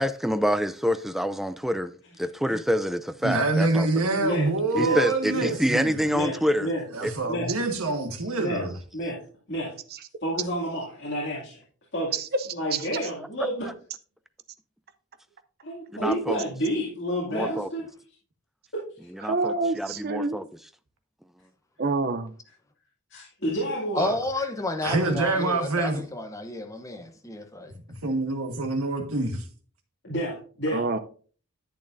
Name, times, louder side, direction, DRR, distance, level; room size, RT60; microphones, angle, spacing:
voice 1, 0.0-1.9 2.2-4.1 4.7-6.7 7.0-7.1 15.9-16.4 17.3-17.7 19.2-20.4, equal, ahead, 0.3 m, -26 dB
voice 2, 3.2-6.0 6.9-8.7 24.0-24.1 24.8-26.0 27.9-29.4, right 3 dB, 75° right, 1.5 m, -26 dB
voice 3, 4.2-4.5 4.7-5.0 5.3-5.5 6.0-6.8 7.3-7.5 8.4-8.6 8.9-9.2 9.5-9.7 10.2-11.6 11.9-12.1 12.5-13.7 15.6-17.8 23.1-24.1 30.0-30.8, equal, 50° left, 2.4 m, -29 dB
voice 4, 12.1-12.9 19.2-20.4 21.8-22.3 30.7-31.0, right 3 dB, 45° right, 0.6 m, -27 dB
voice 5, 24.0-27.7, left 2 dB, 15° left, 0.9 m, -31 dB
10.5 x 8.5 x 2.6 m
head